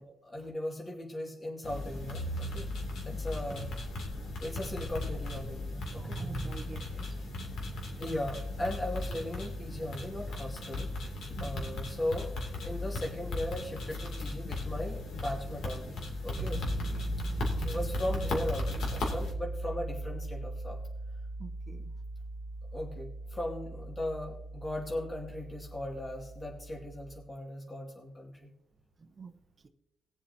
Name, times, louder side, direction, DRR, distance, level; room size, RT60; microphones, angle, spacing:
voice 1, 0.0-2.7 3.1-3.7 4.4-6.2 8.0-10.9 11.4-12.3 12.6-16.6 17.6-20.8 22.7-28.5, left 1 dB, 25° left, -3 dB, 2.5 m, -38 dB
sound 1, 1.6-19.3, left 2 dB, 70° left, 2.8 m, -37 dB
voice 2, 5.9-7.2 11.4-11.8 16.5-17.1 21.4-21.9 29.0-29.7, right 4 dB, 35° right, 7 dB, 0.9 m, -44 dB
Piano, 16.4-27.2, right 1 dB, 65° right, 1.2 m, -38 dB
20.0 x 7.3 x 2.9 m, 0.89 s
cardioid pair, 90°, 0 cm